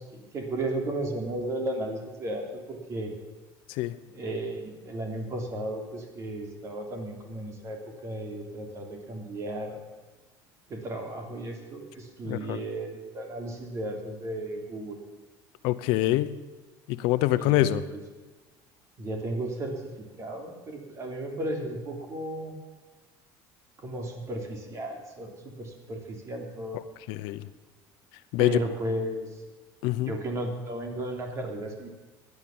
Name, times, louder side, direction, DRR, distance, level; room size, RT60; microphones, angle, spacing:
voice 1, 0.0-3.1 4.1-9.8 10.7-15.0 17.4-18.0 19.0-19.9 20.2-22.5 23.8-26.8 28.4-29.4 30.0-31.9, right 1 dB, 35° right, 3 dB, 3.2 m, -34 dB
voice 2, 12.2-12.6 15.6-16.3 16.9-17.8 27.1-27.5 28.3-28.6 29.8-30.1, left 16 dB, 80° left, 13 dB, 0.8 m, -25 dB
16.5 x 11.0 x 7.3 m, 1.2 s
cardioid pair, 135°, 9 cm